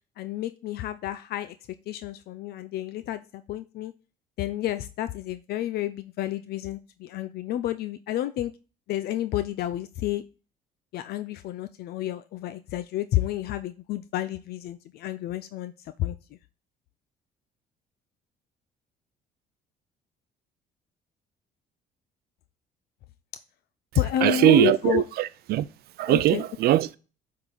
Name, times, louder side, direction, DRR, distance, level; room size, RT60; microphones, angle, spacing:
voice 1, 0.2-1.5 1.9-3.9 4.4-8.5 8.9-10.2 10.9-15.7 16.0-16.2 24.0-25.0 26.1-26.4, left 13 dB, 70° left, 0.5 m, -30 dB
voice 2, 24.2-25.7 26.0-27.0, right 14 dB, 70° right, 0.5 m, -21 dB
8.1 x 3.8 x 3.8 m
cardioid pair, 110°, 17 cm